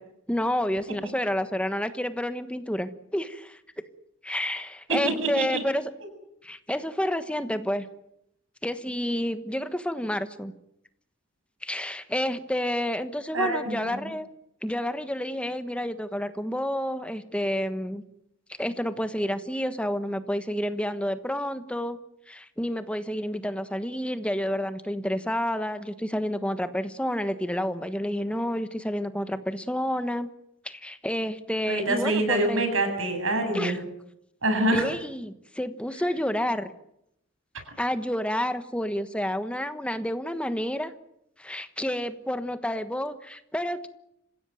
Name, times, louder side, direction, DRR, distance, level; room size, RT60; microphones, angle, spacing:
voice 1, 0.3-3.6 4.2-5.9 6.4-7.9 8.6-10.5 11.6-14.3 14.6-18.0 18.6-22.0 22.3-30.3 30.6-32.6 33.5-33.8 34.7-36.7 37.8-40.9 41.4-43.9, equal, 5° left, 10 dB, 1.3 m, -29 dB
voice 2, 5.2-5.6 13.3-14.0 31.7-33.8 34.4-34.8, right 2 dB, 75° right, 6 dB, 7.6 m, -25 dB
28.0 x 16.5 x 9.3 m, 0.80 s
head